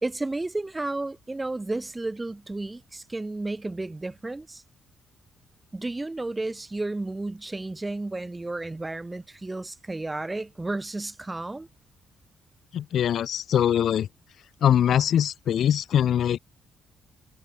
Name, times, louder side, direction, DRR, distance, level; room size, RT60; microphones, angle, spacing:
voice 1, 0.0-4.6 5.7-11.7, right 2 dB, 10° right, 3.3 m, -32 dB
voice 2, 12.7-14.1 14.6-16.4, left 10 dB, 55° left, 1.9 m, -22 dB
cardioid pair, 160°, 0 cm